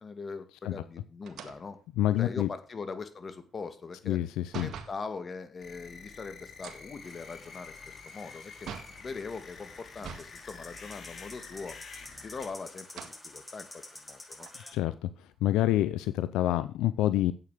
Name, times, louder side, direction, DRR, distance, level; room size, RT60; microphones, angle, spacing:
voice 1, 0.0-1.8 2.2-4.2 4.6-11.8 12.2-14.5, left 4 dB, 40° left, 10 dB, 2.2 m, -41 dB
sound 1, 1.2-5.0 6.5-9.1 9.9-10.4 10.7-10.8 11.9-12.4 12.8-13.2 13.9-14.0 14.4-15.8, right 7 dB, 70° right, 1.7 m, -46 dB
voice 2, 2.0-2.5 4.1-4.7 14.7-15.1 15.4-17.3, left 13 dB, 85° left, 14 dB, 0.5 m, -27 dB
sound 2, 5.6-12.5, left 5 dB, 60° left, 3.8 m, -48 dB
sound 3, 7.0-14.7, left 2 dB, 20° left, 4.7 m, -50 dB
9.7 x 8.3 x 6.6 m, 0.37 s
supercardioid pair, 75°, 0 cm